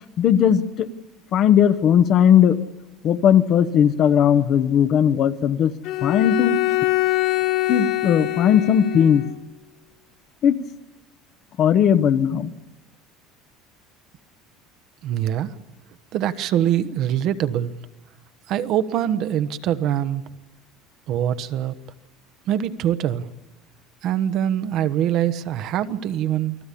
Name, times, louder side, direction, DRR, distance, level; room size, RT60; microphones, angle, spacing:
voice 1, 0.2-0.9 1.3-2.6 3.0-5.7 6.0-6.6 7.7-9.2 10.4-10.6 11.6-12.5, left 9 dB, 35° left, 11 dB, 1.1 m, -17 dB
Bowed string instrument, 5.8-9.3, left 18 dB, 50° left, 3.3 m, -23 dB
voice 2, 15.0-15.6 16.1-17.7 18.5-20.2 21.1-21.7 22.5-23.2 24.0-26.6, right 10 dB, 40° right, 11 dB, 1.1 m, -23 dB
29.0 x 21.0 x 8.4 m, 1.1 s
cardioid pair, 175°, 0 cm